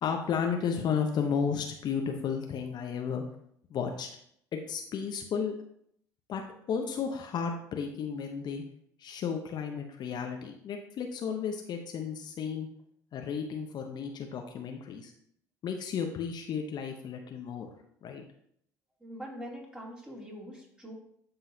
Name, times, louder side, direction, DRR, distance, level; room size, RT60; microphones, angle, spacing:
voice 1, 0.0-3.2 3.7-4.1 4.5-5.6 6.3-6.4 6.7-8.6 9.0-12.7 13.1-15.1 15.6-17.7 18.0-18.2, left 6 dB, 50° left, 3 dB, 0.8 m, -33 dB
voice 2, 19.0-20.9, equal, 10° right, -2 dB, 2.7 m, -43 dB
11.5 x 3.9 x 2.8 m, 0.69 s
hypercardioid pair, 65°, 9 cm